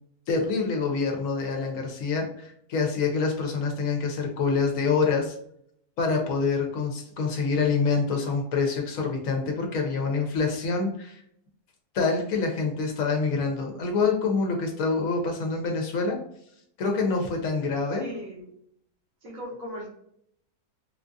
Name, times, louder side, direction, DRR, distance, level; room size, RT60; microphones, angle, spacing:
voice 1, 0.3-5.3 6.0-11.2 11.9-16.2 16.8-18.0, left 4 dB, 65° left, 2 dB, 1.1 m, -26 dB
voice 2, 17.9-18.5 19.2-19.9, equal, 65° right, 0 dB, 1.3 m, -38 dB
3.7 x 2.4 x 2.6 m, 0.70 s
omnidirectional pair, 1.6 m